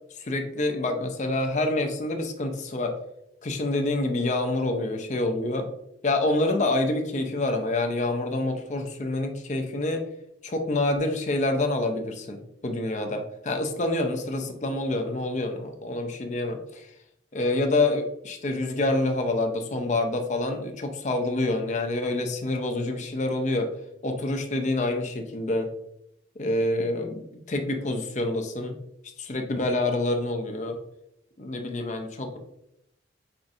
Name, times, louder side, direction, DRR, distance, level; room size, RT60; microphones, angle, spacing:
voice 1, 0.2-2.9 3.4-5.7 6.0-10.0 10.4-16.9 17.3-23.7 24.0-25.7 26.4-28.7 29.2-30.8 31.4-32.4, left 2 dB, 40° left, 5 dB, 0.5 m, -27 dB
5.6 x 2.4 x 2.6 m, 0.79 s
head